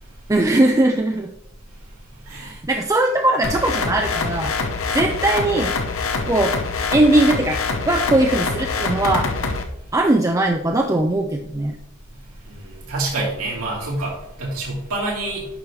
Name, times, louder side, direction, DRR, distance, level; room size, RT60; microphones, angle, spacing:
voice 1, 0.3-1.3 2.3-4.5 4.9-5.7 6.3-6.6 6.9-7.6 7.9-9.3 9.9-11.8, right 2 dB, 15° right, 2 dB, 0.5 m, -19 dB
voice 2, 2.2-2.5 12.4-15.5, right 2 dB, 85° right, -4 dB, 2.6 m, -27 dB
sound 1, 3.4-9.6, left 4 dB, 75° left, 0.9 m, -25 dB
9.7 x 5.4 x 3.2 m, 0.81 s
head